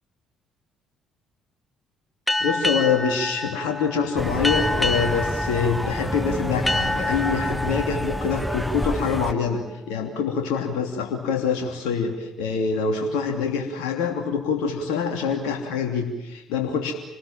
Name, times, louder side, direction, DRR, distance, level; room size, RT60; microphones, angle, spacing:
sound 1, 2.3-9.6, left 1 dB, 15° left, 1.5 m, -28 dB
voice 1, 2.4-16.9, left 6 dB, 75° left, 2 dB, 2.9 m, -25 dB
sound 2, 4.2-9.3, equal, ahead, 1.2 m, -29 dB
sound 3, 6.0-10.9, right 1 dB, 40° right, 5.2 m, -39 dB
28.0 x 19.5 x 7.4 m, 1.0 s
hypercardioid pair, 50°, 0 cm